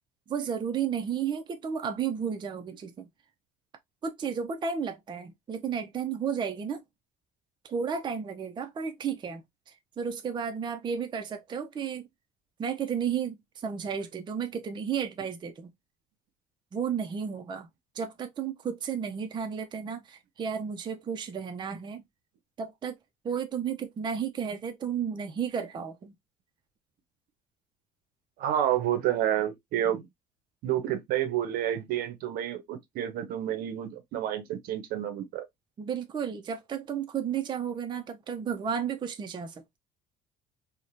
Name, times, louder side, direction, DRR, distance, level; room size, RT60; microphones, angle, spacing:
voice 1, 0.3-3.1 4.0-6.8 7.6-9.4 10.0-12.1 12.6-15.7 16.7-17.7 18.0-22.0 22.6-23.0 23.2-26.1 35.8-39.6, right 7 dB, 30° right, 0.4 m, -33 dB
voice 2, 28.4-30.0 30.6-35.4, right 11 dB, 70° right, 0.6 m, -29 dB
2.9 x 2.1 x 2.5 m
supercardioid pair, 80°, 16 cm